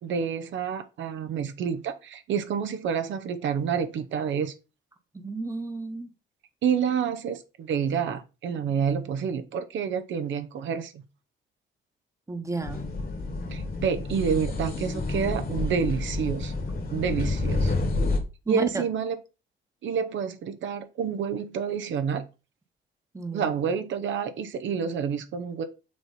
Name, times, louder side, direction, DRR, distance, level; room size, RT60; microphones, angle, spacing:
voice 1, 0.0-4.5 6.6-11.0 13.5-16.5 16.9-17.7 18.5-19.2 19.8-22.3 23.3-25.6, right 7 dB, 70° right, 0.8 m, -28 dB
voice 2, 5.1-6.1 12.3-12.8 18.5-18.8 23.1-23.5, right 3 dB, 15° right, 1.1 m, -32 dB
sound 1, 12.6-18.2, left 2 dB, 50° left, 1.8 m, -29 dB
6.3 x 3.0 x 5.6 m
cardioid pair, 90°, 20 cm